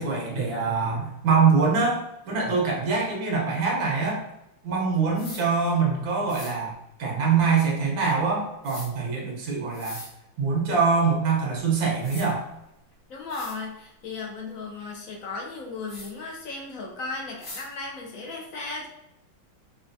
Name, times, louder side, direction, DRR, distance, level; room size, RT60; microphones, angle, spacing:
voice 1, 0.0-2.0 2.3-4.2 4.6-6.7 7.0-10.0 10.4-12.4, right 5 dB, 80° right, -2 dB, 1.8 m, -24 dB
sound 1, 5.1-5.4 6.3-6.5 8.6-8.9 9.7-10.1 11.6-11.7 12.0-12.3 12.9-13.0 13.3-13.6 15.9-16.1 17.4-17.7, left 2 dB, 45° left, 1.2 m, -40 dB
voice 2, 13.1-18.9, left 3 dB, 70° left, 0 dB, 0.7 m, -36 dB
5.5 x 2.3 x 2.6 m, 0.84 s
omnidirectional pair, 2.1 m